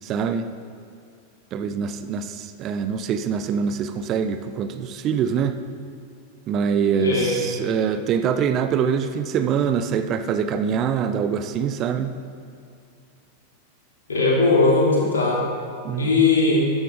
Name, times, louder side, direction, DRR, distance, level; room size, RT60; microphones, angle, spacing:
voice 1, 0.0-0.5 1.5-5.6 6.5-12.2 15.8-16.1, right 7 dB, 35° right, 9 dB, 0.6 m, -24 dB
voice 2, 7.0-7.4 14.1-15.4 16.0-16.6, left 3 dB, 70° left, -4 dB, 2.9 m, -19 dB
12.5 x 9.9 x 3.8 m, 2.5 s
figure-of-eight pair, 90°, 0 cm